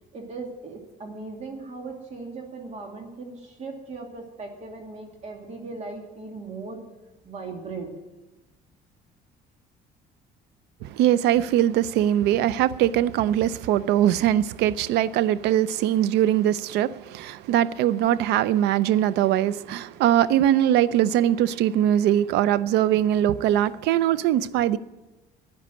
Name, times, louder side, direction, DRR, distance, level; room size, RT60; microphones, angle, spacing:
voice 1, 0.1-6.8 7.2-7.9, right 3 dB, 40° right, 2.5 m, -38 dB
voice 2, 10.8-24.8, right 11 dB, 85° right, 0.5 m, -21 dB
11.5 x 10.0 x 7.7 m
cardioid pair, 110°, 17 cm